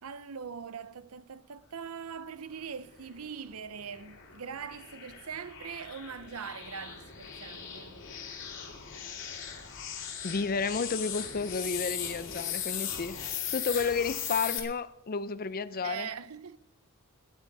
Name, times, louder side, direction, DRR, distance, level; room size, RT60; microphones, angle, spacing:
voice 1, 0.0-8.0 15.7-16.6, right 7 dB, 80° right, 0.7 m, -42 dB
sound 1, 3.0-14.6, left 8 dB, 60° left, 2.5 m, -39 dB
voice 2, 10.2-13.2 13.5-16.1, left 5 dB, 40° left, 0.6 m, -31 dB
19.0 x 10.5 x 4.7 m
head